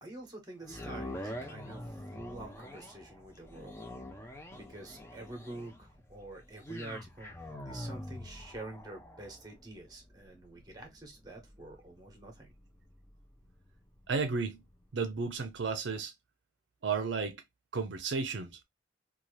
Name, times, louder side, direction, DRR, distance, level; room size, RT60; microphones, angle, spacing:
voice 1, 0.0-3.8 4.5-7.3 7.7-12.5, right 2 dB, 20° right, 0.9 m, -47 dB
sound 1, 0.6-14.8 15.3-15.4, left 1 dB, 15° left, 0.5 m, -46 dB
voice 2, 14.1-14.6 14.9-16.1 16.8-17.4 17.7-18.5, right 4 dB, 75° right, 0.5 m, -33 dB
2.8 x 2.3 x 3.0 m
head